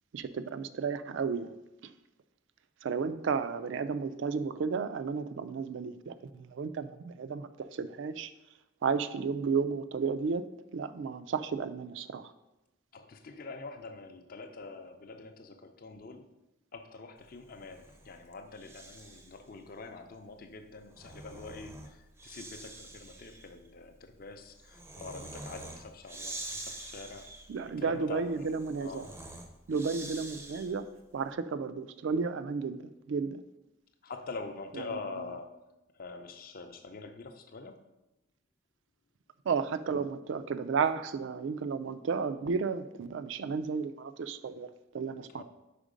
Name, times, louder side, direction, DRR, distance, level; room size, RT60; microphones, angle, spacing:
voice 1, 0.1-1.5 1.8-1.9 2.8-8.3 8.8-10.4 10.7-12.3 27.5-29.1 29.7-30.9 31.1-33.4 34.7-34.8 39.5-44.7 44.9-45.4, right 5 dB, 65° right, 13 dB, 0.3 m, -33 dB
voice 2, 12.9-16.3 16.7-27.4 27.8-28.5 28.8-29.1 34.0-35.5 35.9-37.9 45.3-45.4, left 3 dB, 45° left, 7 dB, 0.5 m, -45 dB
Breathing, 17.5-19.4 20.7-30.9, right 2 dB, 10° right, 0.5 m, -46 dB
5.1 x 4.5 x 5.0 m, 0.97 s
head